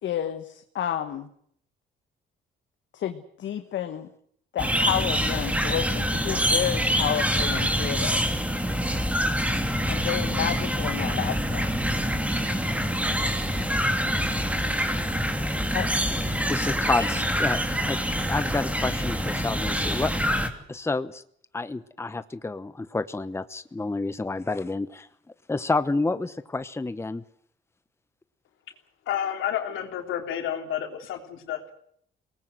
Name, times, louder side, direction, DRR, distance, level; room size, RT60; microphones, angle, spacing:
voice 1, 0.0-1.3 2.9-4.1 4.5-8.2 9.9-11.7 15.7-15.9, left 10 dB, 70° left, 7 dB, 1.4 m, -30 dB
sound 1, 4.6-20.5, equal, 5° right, 2.9 m, -26 dB
voice 2, 16.5-18.0 18.3-20.4 20.7-21.2 21.5-25.1 25.5-27.2, left 3 dB, 15° left, 13 dB, 0.9 m, -29 dB
voice 3, 29.0-31.7, left 10 dB, 85° left, 4 dB, 3.3 m, -30 dB
23.0 x 19.0 x 7.9 m, 0.66 s
cardioid pair, 90°, 20 cm